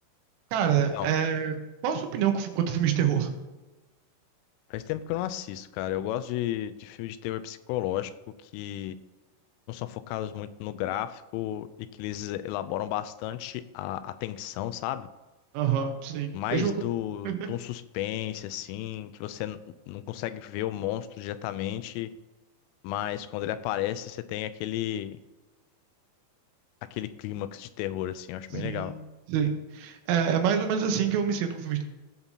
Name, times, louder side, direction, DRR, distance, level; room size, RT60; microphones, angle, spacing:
voice 1, 0.5-1.6 1.8-3.4 15.5-16.9 17.3-17.5 28.5-29.0 29.3-31.8, right 8 dB, 85° right, 5 dB, 3.8 m, -27 dB
voice 2, 4.7-8.1 8.4-9.0 9.7-11.7 12.0-15.1 16.3-19.6 19.9-22.1 22.8-25.2 26.9-28.9, left 13 dB, 85° left, 13 dB, 3.1 m, -33 dB
17.0 x 7.1 x 2.8 m, 1.1 s
omnidirectional pair, 5.7 m